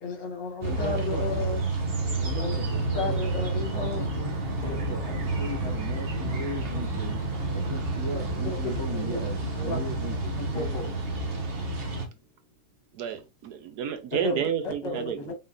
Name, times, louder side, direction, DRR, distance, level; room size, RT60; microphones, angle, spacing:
voice 1, 0.0-1.6 2.4-2.5 2.9-4.1 8.1-8.2 8.9-9.8 10.1-10.9 14.1-15.3, left 3 dB, 85° left, 2.0 m, -33 dB
sound 1, 0.6-12.1, right 2 dB, 40° right, 1.1 m, -30 dB
voice 2, 0.7-1.3 2.2-3.3 3.7-7.2 7.5-10.4, equal, 15° right, 1.1 m, -37 dB
Drum, 4.6-7.6 10.5-13.4, left 2 dB, 25° left, 2.4 m, -49 dB
voice 3, 12.9-15.3, right 8 dB, 70° right, 1.2 m, -31 dB
5.4 x 3.6 x 2.6 m
omnidirectional pair, 1.9 m